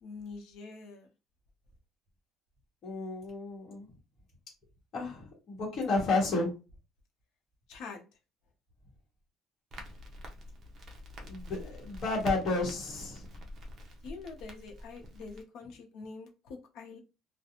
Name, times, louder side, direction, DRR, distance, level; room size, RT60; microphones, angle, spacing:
voice 1, 0.0-1.1 7.7-8.1 14.0-17.0, left 4 dB, 65° left, 0.7 m, -45 dB
voice 2, 2.8-3.9 4.9-6.5 11.2-13.2, left 3 dB, 40° left, 1.1 m, -31 dB
Crackle, 9.7-15.4, equal, 30° right, 0.5 m, -45 dB
2.5 x 2.2 x 2.8 m
cardioid pair, 175°, 0 cm